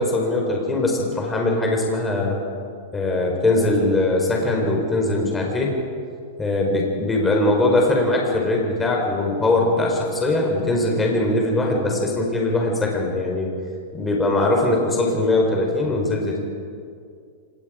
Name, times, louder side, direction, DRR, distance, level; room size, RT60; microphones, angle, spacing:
voice 1, 0.0-2.4 2.9-5.7 6.4-13.5 13.9-16.4, left 2 dB, 15° left, 0 dB, 4.3 m, -21 dB
26.5 x 19.5 x 5.1 m, 2.3 s
hypercardioid pair, 125°, 0 cm